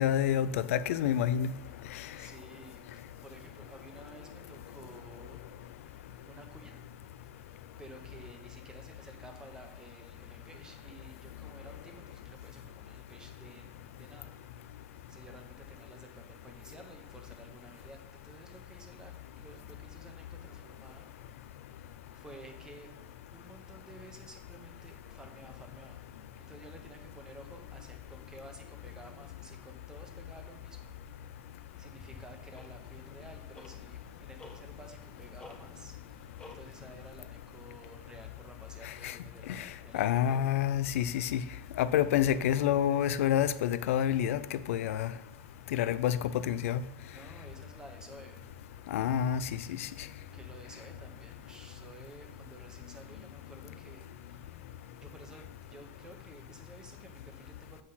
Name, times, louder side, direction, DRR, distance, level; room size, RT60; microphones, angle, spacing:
voice 1, 0.0-1.5 39.0-39.1 39.5-39.7 39.9-41.4 41.8-45.1 45.7-46.2 46.5-46.8 48.9-49.4 49.8-49.9, left 10 dB, 85° left, 0.4 m, -28 dB
voice 2, 2.1-2.8 3.2-5.5 5.8-6.8 7.8-14.3 15.1-21.1 21.7-22.9 23.3-26.0 26.5-31.2 31.8-36.0 36.4-40.5 47.1-48.4 50.3-54.5 55.0-57.8, right 2 dB, 10° right, 1.1 m, -53 dB
Tick-tock, 31.7-37.3, left 3 dB, 10° left, 0.9 m, -54 dB
7.8 x 4.2 x 5.6 m
supercardioid pair, 145°, 7 cm